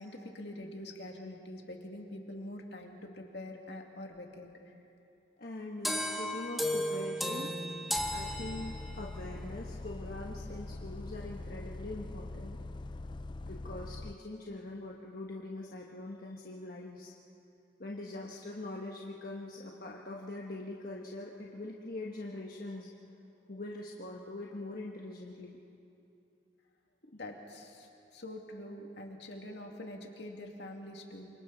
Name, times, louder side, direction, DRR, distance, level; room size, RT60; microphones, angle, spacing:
voice 1, 0.0-4.7 27.1-31.3, left 1 dB, 70° left, 1 dB, 2.3 m, -45 dB
voice 2, 5.4-7.5 8.1-12.6 13.5-17.1 17.8-22.9 23.5-25.6, left 2 dB, 55° left, -2 dB, 1.3 m, -43 dB
sound 1, 5.8-9.1, equal, ahead, 1.1 m, -34 dB
Bus, 7.9-14.2, left 2 dB, 25° left, 0.4 m, -43 dB
28.5 x 25.0 x 4.1 m, 2.7 s
head